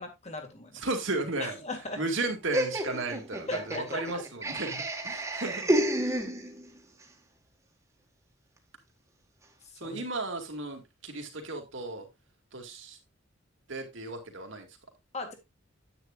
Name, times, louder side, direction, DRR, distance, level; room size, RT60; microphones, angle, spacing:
voice 1, 0.0-0.8 1.4-2.0 3.5-4.2 9.7-10.0 15.1-15.3, left 2 dB, 35° left, 5 dB, 2.2 m, -38 dB
voice 2, 0.8-1.6 2.0-6.2 9.8-12.1 12.5-13.0 13.7-14.7, right 2 dB, 70° right, 3 dB, 2.4 m, -34 dB
Laughter, 2.5-6.8, right 1 dB, 15° right, 1.6 m, -30 dB
9.8 x 8.9 x 2.5 m, 0.21 s
head